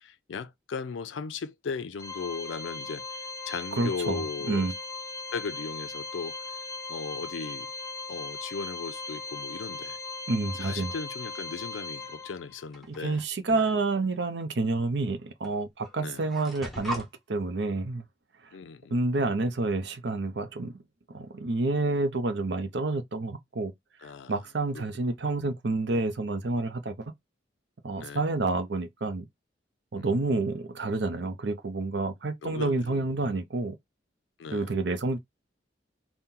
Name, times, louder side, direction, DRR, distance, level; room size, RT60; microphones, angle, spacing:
voice 1, 0.0-3.0 3.5-4.7 5.3-6.4 6.9-7.7 8.1-10.0 10.5-13.2 13.5-13.6 16.0-16.3 18.5-18.9 19.3-19.4 24.0-24.4 24.7-25.0 28.0-28.2 30.0-30.1 32.4-33.1 34.4-34.7, left 5 dB, 85° left, 0.4 m, -37 dB
Organ, 2.0-12.7, left 3 dB, 15° left, 0.4 m, -38 dB
voice 2, 3.8-4.7 10.3-10.9 12.9-18.0 18.9-20.8 21.1-23.7 24.3-27.1 27.8-29.3 29.9-33.8 34.5-35.2, right 3 dB, 70° right, 0.6 m, -29 dB
sound 1, 12.7-13.3 14.4-14.5 15.4-15.6 15.8-17.1, right 1 dB, ahead, 0.8 m, -38 dB
4.2 x 2.2 x 3.7 m
head